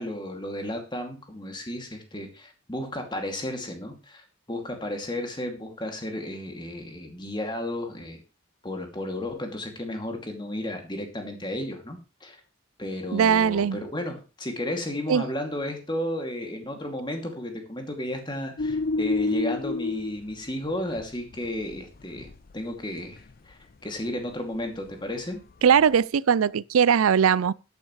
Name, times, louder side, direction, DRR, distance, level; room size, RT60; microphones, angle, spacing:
voice 1, 0.0-8.2 8.6-12.4 12.8-25.4, left 1 dB, 20° left, 2.5 m, -33 dB
voice 2, 13.1-13.8 15.1-15.3 25.6-27.5, right 7 dB, 85° right, 0.4 m, -20 dB
sound 1, 18.6-20.2 20.7-21.0 21.3-21.8 22.2-22.6 23.2-23.3 25.7-25.8, left 3 dB, 45° left, 0.5 m, -28 dB
13.5 x 9.8 x 3.2 m
head